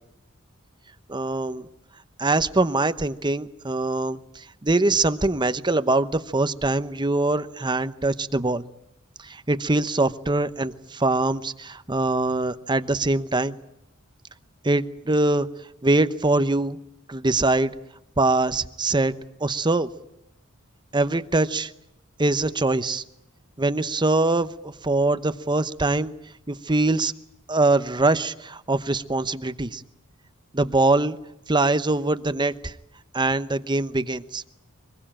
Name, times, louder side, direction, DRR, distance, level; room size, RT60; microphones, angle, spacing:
voice 1, 1.1-1.7 2.2-8.6 9.2-13.5 14.6-15.5 15.8-16.8 17.1-17.7 18.2-19.1 19.4-19.9 20.9-21.7 22.2-23.0 23.6-26.1 26.5-27.1 27.5-29.8 30.5-31.2 31.5-32.7 33.1-34.4, right 2 dB, 20° right, 11 dB, 0.9 m, -23 dB
25.0 x 21.0 x 8.9 m, 0.83 s
head